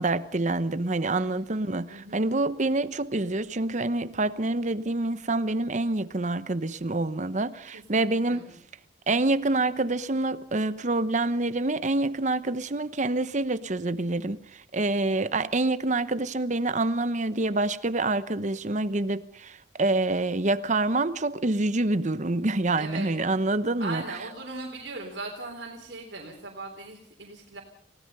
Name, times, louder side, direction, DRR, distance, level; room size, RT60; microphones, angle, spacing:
voice 1, 0.0-8.5 9.1-24.0, right 2 dB, 40° right, 0.9 m, -27 dB
voice 2, 1.1-1.5 1.9-2.2 7.7-8.6 22.8-23.2 23.8-27.6, right 3 dB, 70° right, 3.5 m, -39 dB
29.0 x 17.0 x 5.5 m
head